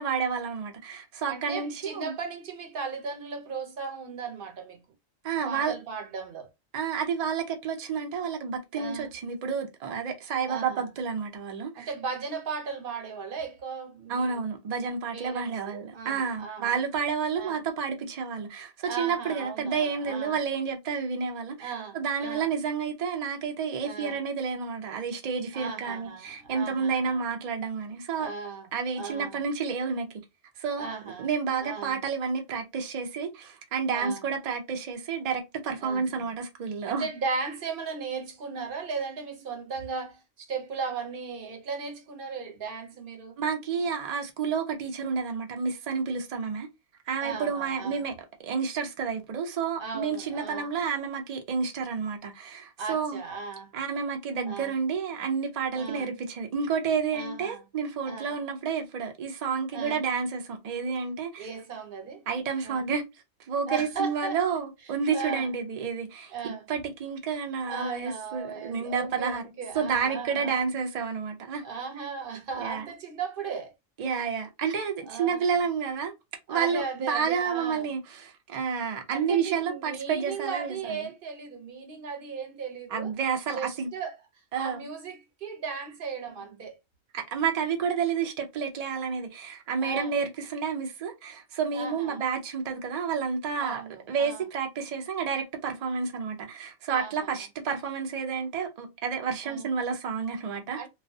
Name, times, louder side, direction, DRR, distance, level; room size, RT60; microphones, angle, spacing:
voice 1, 0.0-2.2 5.2-5.7 6.7-11.9 14.1-28.3 28.7-30.1 30.6-30.9 31.2-37.1 43.4-46.7 47.1-48.1 48.4-53.2 53.7-61.5 62.3-63.0 63.5-69.4 69.7-71.6 71.9-72.1 72.6-72.8 74.0-76.1 76.5-81.0 82.9-83.9 84.5-84.8 87.1-93.8 94.1-100.8, right 6 dB, 75° right, 0.3 m, -30 dB
voice 2, 1.2-4.8 5.5-6.5 8.8-9.1 10.5-10.9 11.7-14.4 15.1-16.9 17.4-17.6 18.8-20.4 21.6-22.5 23.8-24.2 25.5-27.2 28.2-29.4 30.8-31.3 31.6-32.0 33.9-34.2 35.8-36.3 36.8-43.4 47.2-48.0 49.8-50.7 52.8-53.7 54.4-54.7 55.8-56.1 57.1-57.6 58.0-58.4 59.7-60.0 61.4-62.2 62.6-62.8 63.7-64.6 65.1-65.5 66.3-66.7 67.7-70.6 71.6-73.7 75.0-75.4 76.5-77.9 79.1-83.1 83.5-84.1 84.6-86.8 89.8-90.2 91.7-92.2 93.6-94.4 96.9-97.4 99.4-99.6 100.7-100.9, right 5 dB, 55° right, 0.7 m, -37 dB
2.3 x 2.1 x 2.6 m
omnidirectional pair, 1.3 m